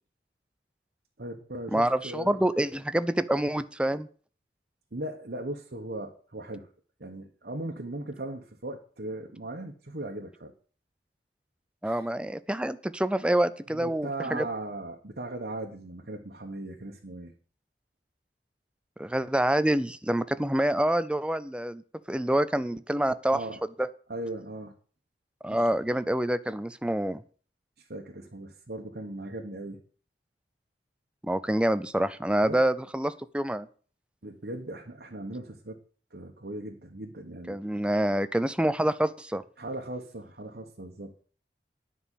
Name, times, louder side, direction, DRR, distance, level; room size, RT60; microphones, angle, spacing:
voice 1, 1.2-2.3 4.9-6.7 7.0-10.5 11.8-12.1 13.7-17.3 23.3-23.6 24.1-24.7 25.5-25.7 27.8-29.8 32.4-32.7 34.2-35.8 36.1-37.6 39.6-41.2, right 1 dB, 60° right, 1 dB, 1.3 m, -38 dB
voice 2, 1.7-4.1 11.8-14.5 19.0-21.8 22.1-23.4 23.8-23.9 25.4-27.2 31.2-33.7 37.5-39.4, right 1 dB, 5° right, 13 dB, 0.4 m, -27 dB
10.0 x 5.4 x 8.3 m, 0.43 s
head